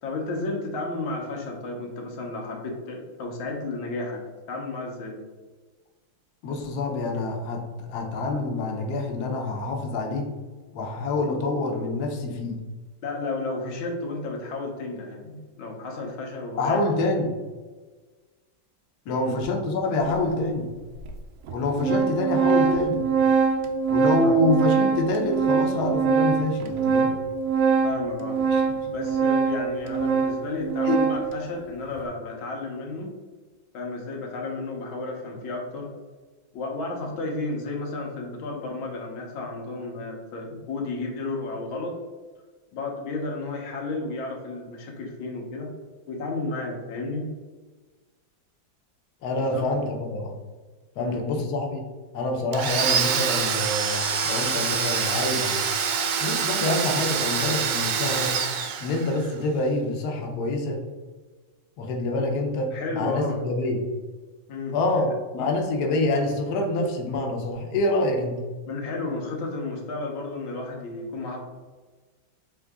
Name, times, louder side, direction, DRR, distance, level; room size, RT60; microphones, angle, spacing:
voice 1, 0.0-5.2 13.0-16.9 19.1-19.4 24.2-24.4 27.8-28.4 28.9-33.2 33.7-35.9 36.5-42.0 42.7-45.7 46.1-47.3 49.4-49.7 51.0-51.3 62.7-63.4 64.5-64.8 65.4-65.5 68.7-71.4, left 2 dB, 90° left, 1 dB, 1.7 m, -32 dB
voice 2, 6.4-7.6 7.9-10.3 10.7-12.6 16.6-17.3 19.1-20.7 21.5-23.0 23.9-27.1 28.5-28.6 30.8-31.0 49.2-50.3 51.0-51.8 52.1-55.6 55.9-58.3 58.8-60.8 61.8-63.8 64.7-68.3, left 2 dB, 65° left, 2 dB, 1.1 m, -26 dB
Organ, 20.1-20.2 21.0-21.1 21.5-31.4, right 5 dB, 90° right, 0.8 m, -23 dB
Domestic sounds home sounds, 52.5-59.3, right 6 dB, 70° right, 1.1 m, -26 dB
3.8 x 3.7 x 3.4 m, 1.3 s
omnidirectional pair, 2.1 m